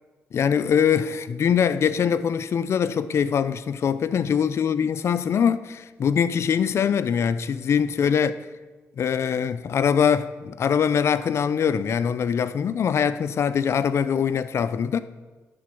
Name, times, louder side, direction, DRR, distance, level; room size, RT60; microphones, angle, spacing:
voice 1, 0.3-8.3 9.0-15.0, left 7 dB, 60° left, 0.4 m, -23 dB
11.0 x 3.9 x 6.7 m
cardioid pair, 80°, 5 cm